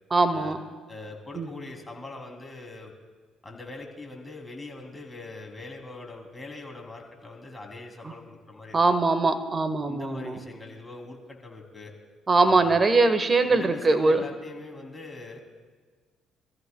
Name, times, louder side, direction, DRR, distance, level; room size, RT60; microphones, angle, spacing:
voice 1, 0.1-0.6 1.3-1.5 8.0-8.1 8.7-10.4 12.3-14.2, right 3 dB, 35° right, 10 dB, 1.2 m, -22 dB
voice 2, 0.9-2.9 3.4-8.8 9.8-11.9 12.5-12.8 13.5-15.4, left 2 dB, 20° left, 1 dB, 2.9 m, -42 dB
25.5 x 14.0 x 2.3 m, 1.5 s
hypercardioid pair, 55°, 0 cm